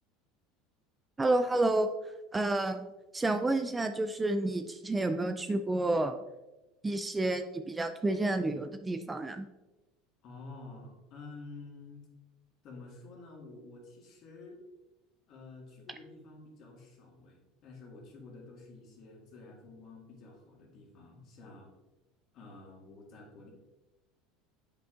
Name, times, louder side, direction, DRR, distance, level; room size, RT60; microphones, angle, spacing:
voice 1, 1.2-1.9 2.3-2.9 3.1-6.1 6.8-9.5, right 2 dB, 15° right, 8 dB, 0.3 m, -30 dB
voice 2, 10.2-12.1 12.6-14.6 15.3-21.7 22.3-23.5, left 3 dB, 50° left, -1 dB, 1.9 m, -50 dB
7.8 x 5.3 x 2.4 m, 1.1 s
supercardioid pair, 120°, 0 cm